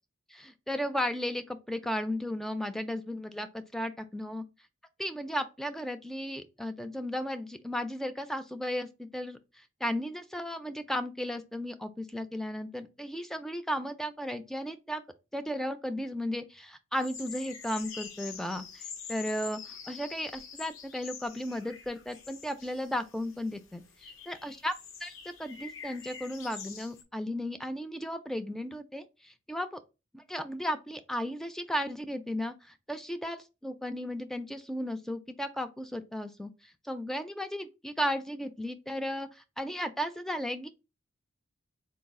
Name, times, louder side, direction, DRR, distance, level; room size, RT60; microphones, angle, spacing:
voice 1, 0.3-4.4 5.0-15.0 15.3-24.7 25.0-29.8 30.1-40.7, equal, ahead, 0.3 m, -35 dB
sound 1, 16.9-27.0, left 6 dB, 70° left, 0.7 m, -46 dB
3.9 x 2.3 x 3.5 m
head